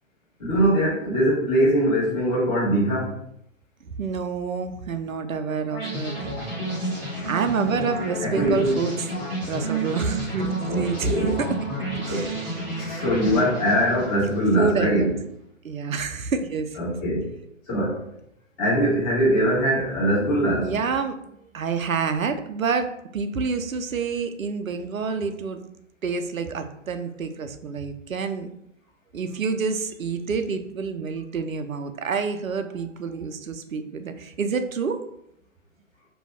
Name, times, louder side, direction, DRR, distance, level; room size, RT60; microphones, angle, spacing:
voice 1, 0.4-3.1 8.2-8.8 10.7-11.3 12.1-12.3 12.8-15.1 16.8-17.3 17.7-18.0 18.6-20.7, equal, 30° left, -7 dB, 1.4 m, -22 dB
voice 2, 3.8-6.4 7.3-9.1 9.5-11.5 12.0-12.6 14.6-15.2 15.6-16.8 20.6-21.2 21.5-25.6 26.0-28.5 29.1-35.0, right 5 dB, 85° right, 8 dB, 0.5 m, -28 dB
sound 1, 5.7-14.8, right 2 dB, 5° left, 0.5 m, -30 dB
2.7 x 2.3 x 3.3 m, 0.74 s
figure-of-eight pair, 130°, 39 cm